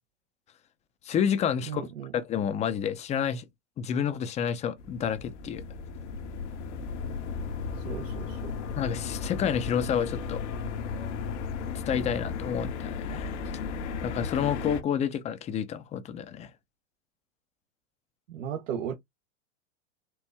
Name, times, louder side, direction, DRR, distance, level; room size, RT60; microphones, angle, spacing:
voice 1, 1.0-1.9 2.1-3.4 3.8-5.6 8.8-10.4 11.9-13.3 14.0-16.5, left 8 dB, 20° left, 0.5 m, -29 dB
voice 2, 1.7-2.1 7.7-8.5 18.3-18.9, right 8 dB, 80° right, 1.0 m, -36 dB
sound 1, 4.8-14.8, left 5 dB, 70° left, 1.1 m, -35 dB
4.5 x 2.6 x 3.3 m
supercardioid pair, 135°, 37 cm